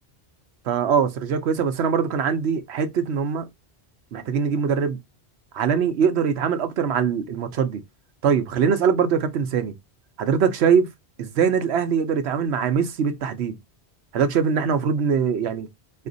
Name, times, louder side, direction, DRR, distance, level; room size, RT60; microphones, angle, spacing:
voice 1, 0.7-3.5 4.1-5.0 5.5-7.8 8.2-9.7 10.2-10.9 11.2-13.6 14.1-15.7, right 6 dB, 80° right, 1.0 m, -22 dB
4.2 x 2.5 x 3.9 m
omnidirectional pair, 1.1 m